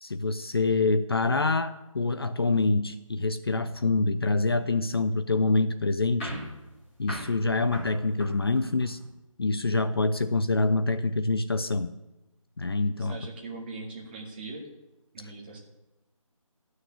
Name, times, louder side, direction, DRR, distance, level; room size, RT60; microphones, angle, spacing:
voice 1, 0.0-6.3 7.0-9.0 9.4-11.9 12.6-13.2 15.2-15.3, left 3 dB, 45° left, 10 dB, 0.6 m, -26 dB
sound 1, 6.2-9.1, equal, 10° left, 4.2 m, -40 dB
voice 2, 13.0-14.6 15.1-15.6, right 3 dB, 20° right, -2 dB, 2.1 m, -40 dB
12.5 x 6.6 x 9.3 m, 0.98 s
figure-of-eight pair, 170°, 18 cm